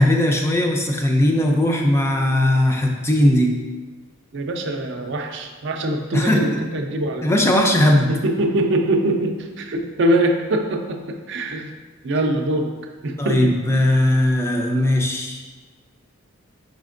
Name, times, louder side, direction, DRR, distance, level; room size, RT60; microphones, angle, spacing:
voice 1, 0.0-3.6 6.1-6.5 7.2-8.1 13.2-15.4, left 1 dB, 15° left, 1 dB, 0.4 m, -18 dB
voice 2, 4.3-7.2 8.1-11.7 12.0-12.7 13.0-13.5, right 1 dB, 60° right, 4 dB, 0.5 m, -23 dB
5.0 x 4.2 x 2.5 m, 1.3 s
head